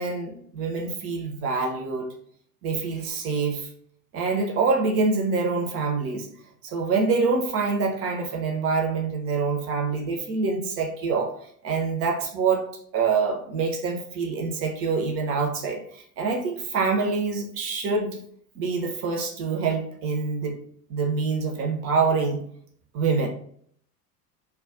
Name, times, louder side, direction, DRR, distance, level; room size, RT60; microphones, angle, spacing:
voice 1, 0.0-2.1 2.6-3.7 4.1-6.3 6.6-11.3 11.6-12.7 12.9-18.2 18.6-20.6 20.9-22.4 22.9-23.3, right 4 dB, 30° right, 2 dB, 0.6 m, -25 dB
2.2 x 2.2 x 3.6 m, 0.63 s
figure-of-eight pair, 75°, 49 cm